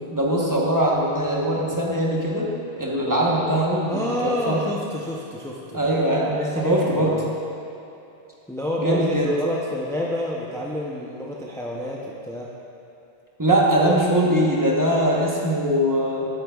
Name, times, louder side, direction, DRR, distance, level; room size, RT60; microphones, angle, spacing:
voice 1, 0.0-2.5 2.7-4.6 5.7-7.1 8.8-9.3 13.4-16.3, right 1 dB, 20° right, -4 dB, 1.0 m, -21 dB
voice 2, 3.9-5.9 6.3-7.3 8.5-12.5, left 1 dB, 5° left, -3 dB, 0.4 m, -29 dB
11.5 x 8.2 x 2.3 m, 2.8 s
omnidirectional pair, 1.1 m